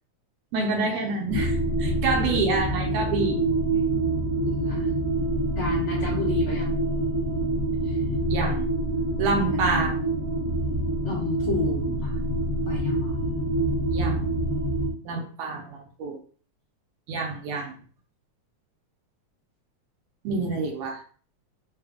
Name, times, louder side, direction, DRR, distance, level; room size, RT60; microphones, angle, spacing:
voice 1, 0.5-3.4 8.3-8.7 9.2-10.0 13.9-14.3 15.0-16.2 17.1-17.8 20.2-21.0, right 3 dB, 75° right, 1 dB, 1.7 m, -27 dB
sound 1, 1.3-14.9, right 1 dB, 60° left, 1.5 m, -26 dB
voice 2, 4.5-4.9 5.6-6.7 7.8-8.0 9.5-9.9 11.0-12.2 12.7-13.1, left 3 dB, 75° left, -3 dB, 1.2 m, -31 dB
4.6 x 2.2 x 3.4 m, 0.43 s
omnidirectional pair, 3.4 m